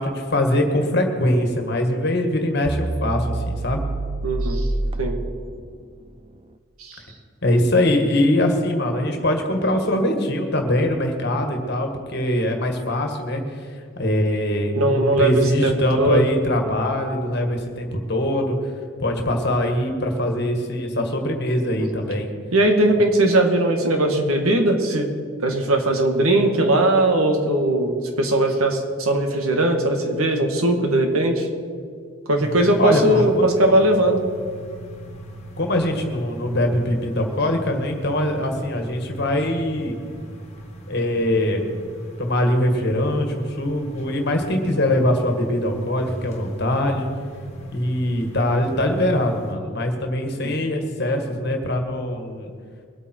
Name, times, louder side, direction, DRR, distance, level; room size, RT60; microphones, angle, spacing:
voice 1, 0.0-3.8 7.4-13.4 14.0-18.6 19.0-22.3 32.8-33.5 35.6-40.0 40.9-41.6 42.2-47.1 47.7-52.5, left 1 dB, 50° left, 3 dB, 1.8 m, -22 dB
sound 1, 2.6-5.8, right 2 dB, 25° right, 0.4 m, -27 dB
voice 2, 4.2-4.7 5.0-5.2 6.8-7.0 14.8-16.3 21.8-21.9 22.5-25.1 25.4-31.5 32.3-34.2 50.4-50.5, right 1 dB, 85° right, 4 dB, 2.0 m, -19 dB
sound 2, 32.4-49.5, right 1 dB, 30° left, 1.8 m, -39 dB
22.0 x 8.7 x 4.6 m, 2.1 s
head